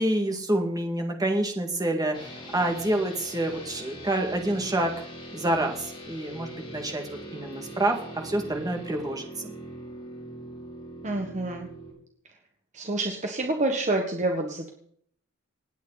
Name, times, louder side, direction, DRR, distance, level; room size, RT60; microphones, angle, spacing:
voice 1, 0.0-5.1 5.3-8.0 8.2-9.3, right 1 dB, 20° right, 3 dB, 2.2 m, -27 dB
sound 1, 2.1-11.9, right 1 dB, 25° left, 5.7 m, -42 dB
voice 2, 11.0-11.7 12.7-14.7, right 2 dB, 35° right, 3 dB, 1.4 m, -28 dB
27.5 x 9.3 x 4.2 m, 0.64 s
head